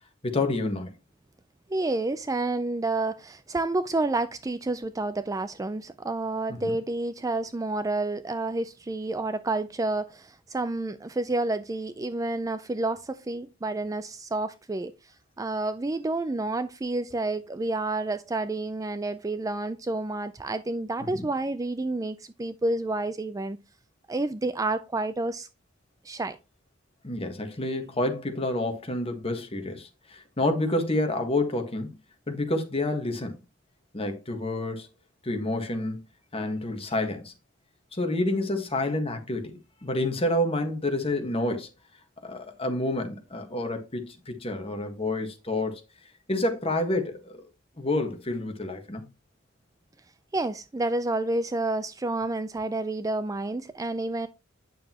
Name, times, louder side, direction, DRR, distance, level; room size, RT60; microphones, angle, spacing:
voice 1, 0.2-0.9 6.5-6.8 21.1-21.3 27.0-32.0 32.3-33.4 33.9-34.9 35.2-36.0 36.3-37.3 37.9-41.7 42.2-45.8 46.3-47.4 47.8-49.0, left 2 dB, 30° left, 1.5 m, -29 dB
voice 2, 1.7-14.9 15.4-23.6 24.1-25.5 26.0-26.4 50.3-54.3, right 2 dB, 15° right, 0.4 m, -29 dB
9.1 x 6.7 x 3.0 m
head